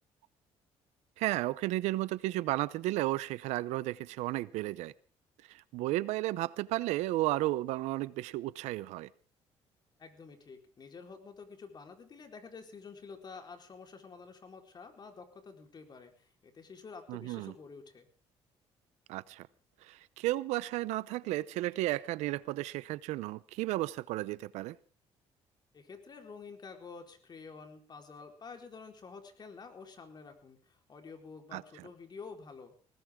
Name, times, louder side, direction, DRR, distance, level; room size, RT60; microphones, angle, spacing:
voice 1, 1.2-4.9 5.5-9.1 17.1-17.5 19.1-19.5 19.8-24.8 31.5-31.9, right 17 dB, 90° right, 19 dB, 0.7 m, -33 dB
voice 2, 10.0-18.1 25.7-32.7, left 5 dB, 40° left, 4 dB, 4.3 m, -49 dB
20.5 x 19.0 x 3.7 m, 0.39 s
cardioid pair, 100°, 11 cm